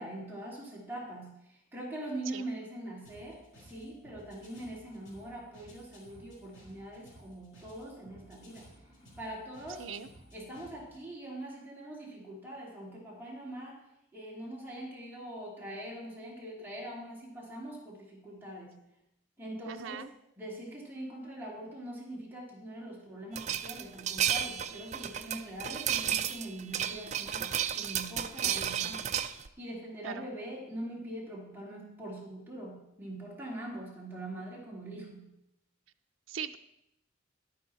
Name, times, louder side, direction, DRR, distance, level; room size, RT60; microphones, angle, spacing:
voice 1, 0.0-1.4 1.7-8.7 9.2-9.9 10.3-13.8 14.1-18.7 19.4-20.1 20.4-29.1 29.6-35.3, right 1 dB, 10° right, -5 dB, 2.7 m, -43 dB
sound 1, 3.0-11.0, equal, 80° left, 4.8 m, -56 dB
voice 2, 19.7-20.1 30.0-30.3 36.3-36.6, right 7 dB, 90° right, 7 dB, 0.5 m, -40 dB
sound 2, 23.4-29.5, right 9 dB, 35° right, 0.4 m, -32 dB
11.0 x 9.3 x 4.2 m, 0.85 s
head